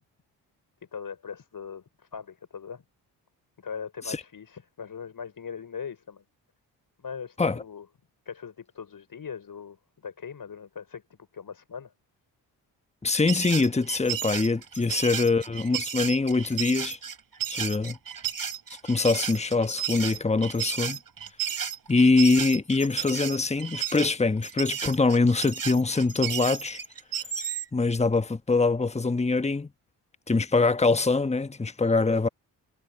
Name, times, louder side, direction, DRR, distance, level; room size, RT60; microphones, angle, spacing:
voice 1, 0.9-2.8 3.6-6.2 7.0-7.9 8.3-11.0 11.3-11.9, left 6 dB, 45° left, 5.3 m, -40 dB
voice 2, 13.0-17.0 17.5-18.0 18.8-21.0 21.9-26.8 27.7-29.7 30.3-32.3, left 3 dB, 15° left, 1.2 m, -24 dB
sound 1, 13.1-27.7, right 8 dB, 45° right, 4.8 m, -33 dB
hypercardioid pair, 50°, 47 cm